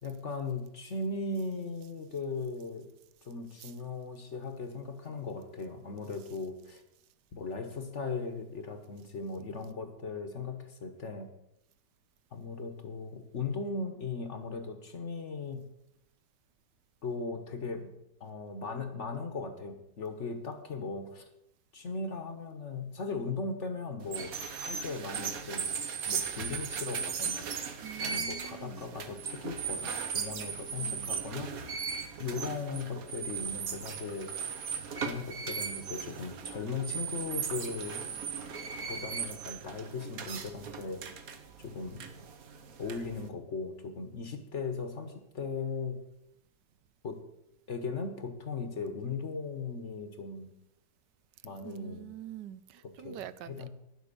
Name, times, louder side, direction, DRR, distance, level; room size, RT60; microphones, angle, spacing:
voice 1, 0.0-2.9 3.2-6.8 7.3-11.3 12.3-15.7 17.0-17.9 18.2-21.3 21.7-24.4 24.7-27.5 28.0-31.5 32.2-34.5 34.9-38.0 38.9-41.0 41.6-42.1 42.8-46.0 47.0-47.2 47.7-50.5 51.4-52.1 53.0-53.7, left 4 dB, 45° left, 1.2 m, -38 dB
sound 1, 24.0-43.3, right 6 dB, 55° right, 1.3 m, -37 dB
voice 2, 27.8-29.0 30.4-30.5 30.8-31.2 51.6-53.7, right 12 dB, 75° right, 1.2 m, -46 dB
10.5 x 8.0 x 6.8 m
omnidirectional pair, 1.9 m